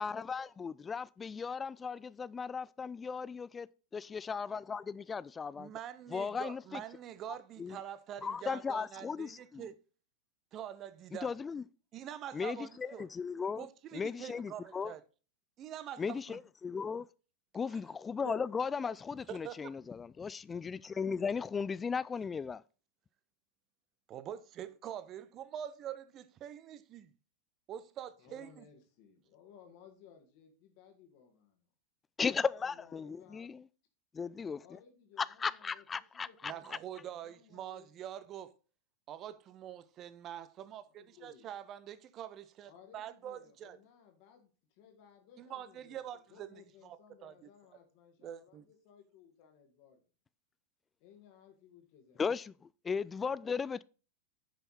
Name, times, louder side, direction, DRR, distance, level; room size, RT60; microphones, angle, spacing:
voice 1, 0.0-3.7 3.9-5.7 6.1-6.8 7.6-7.8 8.2-9.7 11.1-11.6 12.3-13.7 13.9-14.9 16.0-17.1 17.5-22.6 32.2-33.6 34.1-34.8 35.2-36.5 52.2-52.5 52.8-53.8, left 5 dB, 15° left, 0.3 m, -36 dB
voice 2, 5.6-9.7 10.5-11.4 11.9-13.1 13.6-15.0 15.6-16.4 17.7-17.8 18.2-18.4 19.3-19.7 24.1-27.1 27.7-28.6 36.4-38.5 39.1-43.8 45.4-47.0 47.2-47.3 48.2-48.6, right 10 dB, 30° right, 0.8 m, -45 dB
voice 3, 28.2-31.6 32.6-33.5 34.6-37.9 40.9-41.5 42.7-50.0 51.0-52.2 53.3-53.4, left 8 dB, 45° left, 1.9 m, -60 dB
10.0 x 5.6 x 4.1 m
figure-of-eight pair, 90°, 0 cm